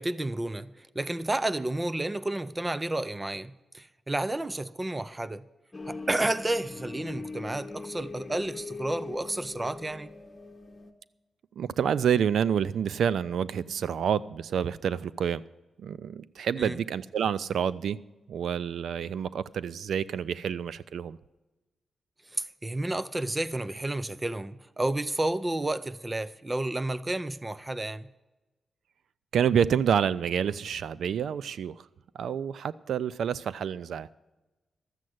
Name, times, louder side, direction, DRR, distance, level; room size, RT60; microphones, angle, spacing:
voice 1, 0.0-5.4 5.9-10.1 16.6-16.8 22.3-28.1, right 2 dB, 15° right, 0.4 m, -31 dB
sound 1, 5.7-10.9, left 3 dB, 15° left, 1.1 m, -41 dB
voice 2, 11.6-15.4 15.8-18.0 18.3-21.2 29.3-31.8 32.1-34.1, right 8 dB, 80° right, 0.3 m, -28 dB
13.0 x 7.5 x 7.8 m
wide cardioid pair, 150°, 0 cm